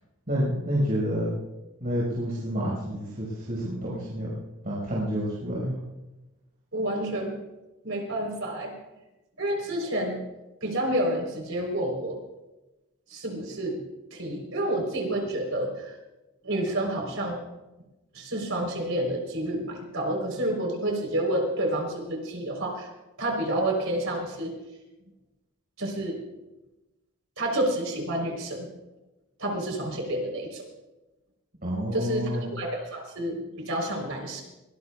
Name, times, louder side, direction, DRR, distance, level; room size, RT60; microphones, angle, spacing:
voice 1, 0.3-1.3 1.8-4.3 4.6-5.8 31.6-32.5, equal, 45° right, -5 dB, 5.3 m, -29 dB
voice 2, 6.7-7.4 7.8-8.7 9.4-10.2 10.6-12.2 13.1-13.8 14.1-15.9 16.4-17.4 18.1-22.9 23.2-24.5 25.8-26.2 27.4-28.7 29.4-30.6 31.9-34.4, right 1 dB, 65° right, 1 dB, 4.0 m, -29 dB
23.0 x 18.5 x 2.4 m, 1.0 s
head